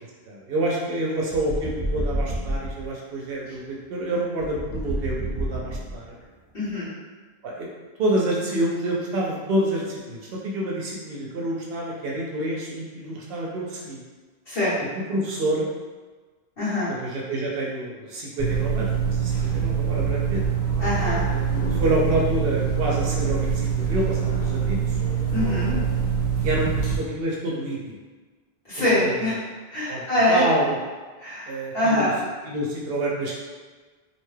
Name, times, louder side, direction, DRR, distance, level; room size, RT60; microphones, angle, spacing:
voice 1, 0.3-6.2 7.4-7.7 8.0-14.0 15.1-15.7 17.0-20.4 21.3-25.0 26.4-28.0 28.9-29.2 29.9-30.0 30.3-30.8 31.5-32.1 32.4-33.4, right 1 dB, 70° right, -3 dB, 0.7 m, -27 dB
sound 1, 1.3-2.9 4.4-6.2, right 1 dB, 25° right, 1.1 m, -29 dB
voice 2, 6.5-6.9 14.5-14.8 16.6-16.9 20.8-21.2 25.3-25.7 28.7-29.4 29.7-30.4 31.2-32.1, left 1 dB, 65° left, -13 dB, 1.3 m, -24 dB
sound 2, 18.4-27.0, right 6 dB, 85° left, 1.0 m, -24 dB
2.7 x 2.2 x 3.1 m, 1.3 s
omnidirectional pair, 1.1 m